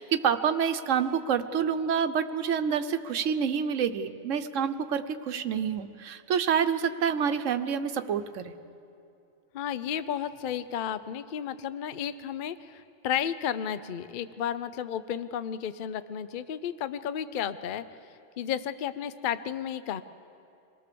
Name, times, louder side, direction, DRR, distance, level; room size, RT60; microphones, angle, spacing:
voice 1, 0.0-8.5, right 7 dB, 85° right, 9 dB, 1.2 m, -27 dB
voice 2, 9.5-17.8 18.4-20.0, left 9 dB, 50° left, 13 dB, 0.7 m, -33 dB
26.0 x 18.5 x 6.9 m, 2.6 s
omnidirectional pair, 1.3 m